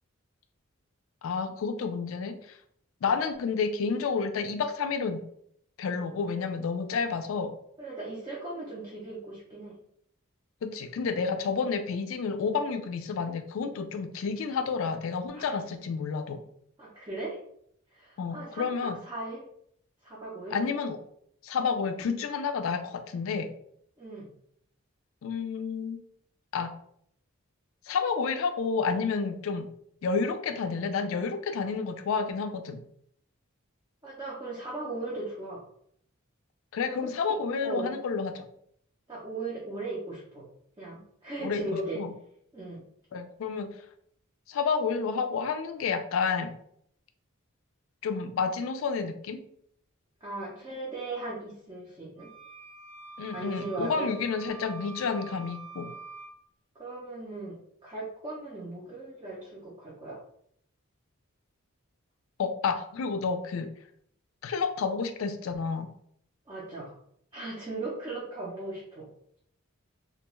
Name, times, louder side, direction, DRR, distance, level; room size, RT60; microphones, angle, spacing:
voice 1, 1.2-2.4 3.0-5.2 5.8-7.5 10.6-16.4 18.2-19.0 20.5-21.0 21.4-23.5 25.2-26.0 26.5-26.8 27.9-29.7 30.0-32.8 36.7-38.5 41.4-42.1 43.1-43.7 44.5-46.5 48.0-49.4 53.2-55.9 62.4-63.7 64.4-65.9, left 5 dB, 70° left, 8 dB, 0.3 m, -30 dB
voice 2, 7.8-9.8 15.3-15.6 16.8-17.4 17.9-19.4 20.0-20.6 24.0-24.3 34.0-35.6 36.9-37.0 37.6-38.0 39.1-40.5 40.8-42.0 42.5-42.8 50.2-52.3 53.3-54.1 56.8-57.6 57.8-60.2 66.5-67.0 67.3-69.1, right 2 dB, 20° right, -6 dB, 0.5 m, -38 dB
sound 1, 52.2-56.3, right 4 dB, 90° right, 0.7 m, -46 dB
2.4 x 2.2 x 3.0 m, 0.68 s
head